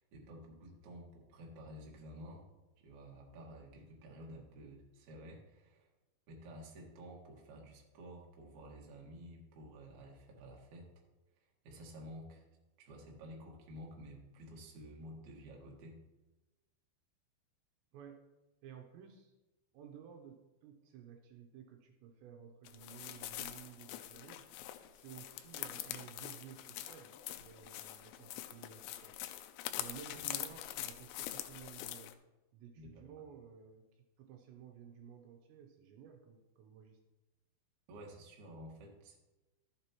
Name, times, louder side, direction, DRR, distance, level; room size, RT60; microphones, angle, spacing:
voice 1, 0.0-2.4 2.8-5.9 6.3-10.9 11.6-12.4 12.8-16.0 32.8-33.0 37.9-39.2, equal, 55° right, -1 dB, 2.4 m, -52 dB
voice 2, 17.9-18.3 18.6-19.3 19.7-24.4 24.9-29.1 29.8-32.2 32.5-37.0, right 8 dB, 80° right, 4 dB, 2.9 m, -54 dB
sound 1, 22.7-32.1, left 13 dB, 85° left, 2.7 m, -44 dB
13.0 x 6.9 x 2.9 m, 1.1 s
omnidirectional pair, 5.2 m